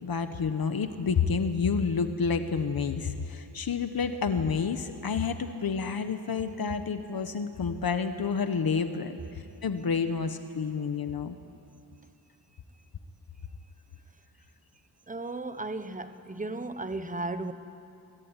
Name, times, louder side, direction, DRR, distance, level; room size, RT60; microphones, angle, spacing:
voice 1, 0.0-9.2 9.6-11.3, left 5 dB, 60° left, 8 dB, 1.3 m, -29 dB
voice 2, 15.1-17.5, right 2 dB, 20° right, 10 dB, 1.2 m, -35 dB
24.5 x 23.0 x 9.8 m, 2.7 s
wide cardioid pair, 135°, 41 cm